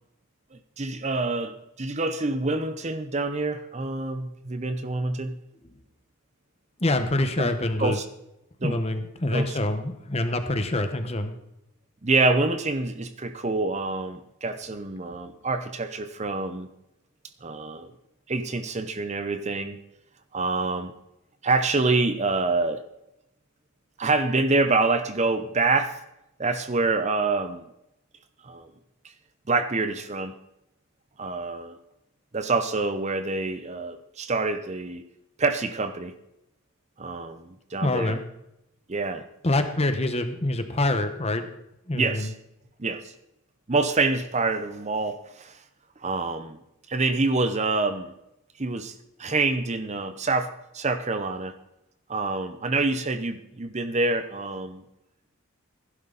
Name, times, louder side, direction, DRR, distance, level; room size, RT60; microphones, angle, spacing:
voice 1, 0.5-5.4 7.4-7.5 7.8-8.0 8.6-8.8 9.3-9.6 12.0-16.7 17.4-17.9 18.3-19.8 20.3-20.9 21.4-22.8 24.0-26.0 26.4-27.7 28.4-28.7 29.5-30.3 31.2-31.8 32.3-35.0 35.4-36.1 37.0-38.2 38.9-39.2 41.9-42.3 42.8-43.1 43.7-45.6 46.0-46.6 46.9-48.1 48.6-48.9 49.2-51.5 52.1-54.8, right 3 dB, 30° right, 0.7 m, -26 dB
voice 2, 6.8-8.0 8.6-11.3 37.8-38.2 39.4-41.5 41.9-42.3, left 2 dB, 25° left, 1.1 m, -25 dB
15.5 x 11.0 x 4.0 m
head